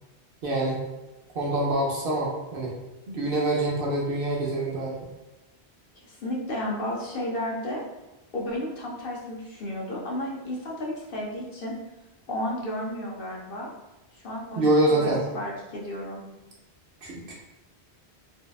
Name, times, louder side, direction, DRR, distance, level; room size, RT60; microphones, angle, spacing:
voice 1, 0.4-0.8 1.3-2.7 3.1-5.1 14.6-15.2 17.0-17.3, right 1 dB, 65° right, -3 dB, 0.8 m, -25 dB
voice 2, 5.9-7.8 8.3-11.7 12.3-13.7 14.2-14.6 14.9-16.2, left 1 dB, 65° left, -3 dB, 0.7 m, -32 dB
2.6 x 2.1 x 2.3 m, 1.1 s
omnidirectional pair, 1.1 m